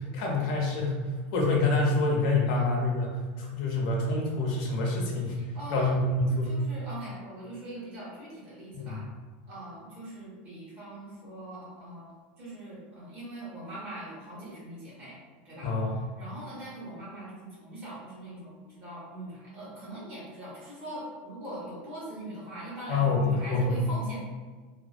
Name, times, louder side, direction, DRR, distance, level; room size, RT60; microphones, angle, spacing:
voice 1, 0.0-5.4 5.7-6.6 8.7-9.0 15.6-16.0 22.9-23.8, left 2 dB, 60° left, -1 dB, 0.6 m, -27 dB
voice 2, 5.3-6.0 6.5-9.0 9.5-12.1 12.4-15.2 15.4-15.7 16.2-24.2, right 1 dB, 30° right, -8 dB, 1.1 m, -42 dB
2.5 x 2.1 x 2.4 m, 1.4 s
supercardioid pair, 155°, 6 cm